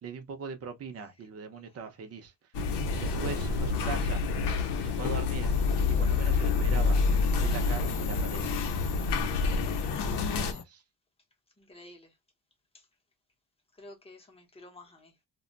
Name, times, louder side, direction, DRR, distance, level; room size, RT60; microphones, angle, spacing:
voice 1, 0.0-2.3 3.0-4.2 4.8-5.5 6.0-7.0 7.4-8.7 10.2-10.8, right 5 dB, 35° right, 0.6 m, -40 dB
sound 1, 2.5-10.5, left 4 dB, 80° left, 0.7 m, -28 dB
sound 2, 5.5-10.6, left 6 dB, 45° left, 0.4 m, -42 dB
voice 2, 11.6-12.1 12.7-12.9 13.7-15.1, left 1 dB, 15° left, 0.8 m, -52 dB
2.2 x 2.0 x 3.8 m
cardioid pair, 125°, 41 cm